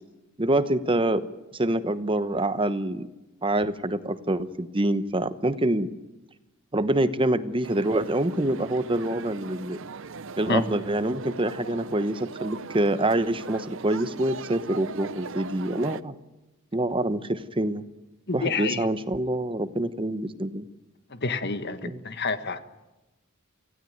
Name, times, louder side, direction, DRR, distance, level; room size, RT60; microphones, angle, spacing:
voice 1, 0.4-1.3 1.5-3.1 3.4-5.9 6.7-9.8 10.4-16.1 16.7-17.8 18.3-20.7 21.9-22.0, right 1 dB, 25° right, 12 dB, 1.0 m, -26 dB
sound 1, 7.6-16.0, right 5 dB, 60° right, 0.7 m, -39 dB
voice 2, 18.3-18.9 21.1-22.6, left 4 dB, 50° left, 10 dB, 1.5 m, -28 dB
24.5 x 16.5 x 9.4 m, 1.0 s
head